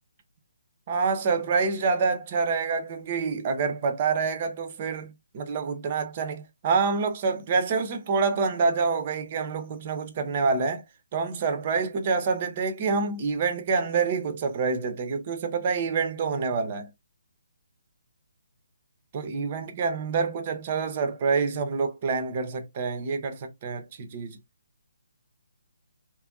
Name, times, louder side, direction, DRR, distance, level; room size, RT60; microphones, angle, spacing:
voice 1, 0.9-10.8 11.1-16.9 19.1-24.4, right 5 dB, 35° right, 0.5 m, -27 dB
2.8 x 2.5 x 2.2 m
figure-of-eight pair, 140°, 0 cm